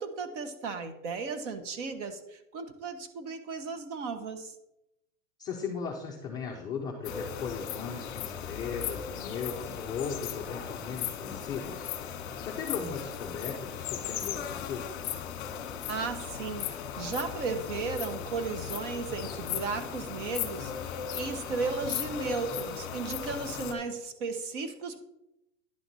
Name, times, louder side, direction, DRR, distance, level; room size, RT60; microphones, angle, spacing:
voice 1, 0.0-4.5 15.9-25.0, right 4 dB, 55° right, 8 dB, 1.2 m, -35 dB
voice 2, 5.4-11.9 12.4-15.1, left 5 dB, 10° left, -4 dB, 0.4 m, -37 dB
sound 1, 7.0-23.7, left 8 dB, 30° left, 1.2 m, -37 dB
10.5 x 6.0 x 4.0 m, 0.88 s
hypercardioid pair, 145°, 43 cm